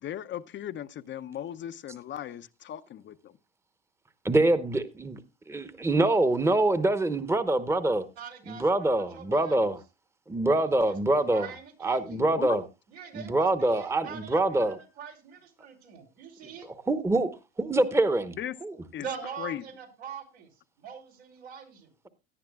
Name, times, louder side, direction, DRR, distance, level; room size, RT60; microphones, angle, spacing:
voice 1, 0.0-3.3 12.1-12.6 18.4-18.6 18.9-19.1 19.4-19.6, left 11 dB, 35° left, 0.7 m, -37 dB
voice 2, 4.2-5.2 5.5-8.0 8.5-9.8 10.3-11.5 11.8-12.6 13.1-14.7 16.9-17.3 17.6-18.4 18.6-18.7, right 2 dB, 10° right, 1.0 m, -25 dB
voice 3, 8.2-9.6 10.8-12.0 12.9-16.7 19.0-20.5 20.8-22.1, right 7 dB, 80° right, 3.8 m, -43 dB
16.5 x 10.0 x 2.3 m
hypercardioid pair, 85°, 32 cm